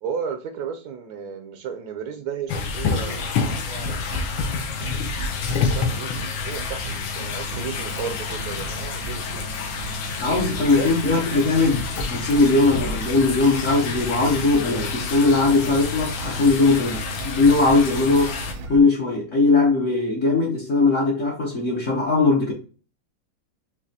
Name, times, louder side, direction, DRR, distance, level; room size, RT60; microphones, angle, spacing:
voice 1, 0.0-4.3 5.7-9.6 10.8-11.3, right 7 dB, 70° right, 0.9 m, -34 dB
sound 1, 2.5-18.5, left 5 dB, 85° left, 1.5 m, -28 dB
sound 2, 2.7-18.8, right 3 dB, 90° right, 1.5 m, -37 dB
voice 2, 10.2-22.5, left 3 dB, 50° left, 1.1 m, -20 dB
5.2 x 2.9 x 2.8 m
omnidirectional pair, 2.0 m